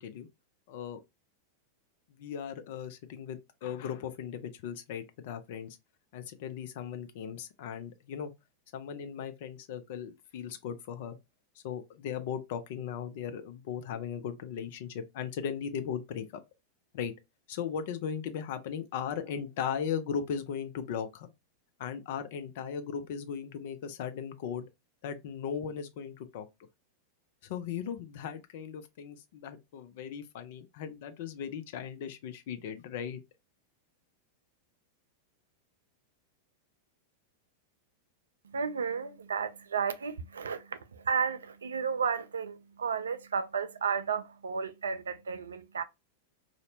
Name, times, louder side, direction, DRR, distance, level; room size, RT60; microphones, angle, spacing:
voice 1, 0.7-1.0 2.2-5.8 6.1-8.3 8.7-11.2 11.6-16.3 16.9-17.1 17.5-21.3 21.8-24.7 25.0-26.5 27.5-33.2, left 7 dB, 50° left, 0.4 m, -37 dB
voice 2, 38.4-45.8, right 6 dB, 70° right, 0.3 m, -33 dB
2.6 x 2.0 x 2.7 m
figure-of-eight pair, 90°, 0 cm